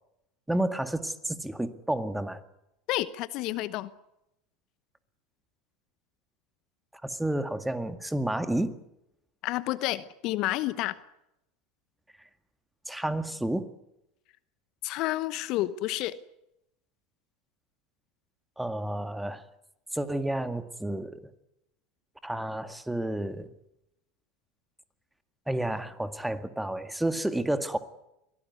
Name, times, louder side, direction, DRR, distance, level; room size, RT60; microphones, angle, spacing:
voice 1, 0.5-2.4 7.0-8.8 12.9-13.7 18.6-19.4 19.9-21.3 22.2-23.5 25.5-27.8, right 1 dB, 5° right, 9 dB, 2.0 m, -30 dB
voice 2, 2.9-3.9 9.4-11.0 14.8-16.2, left 16 dB, 55° left, 15 dB, 1.0 m, -30 dB
23.0 x 17.5 x 9.5 m, 0.86 s
hypercardioid pair, 80°, 0 cm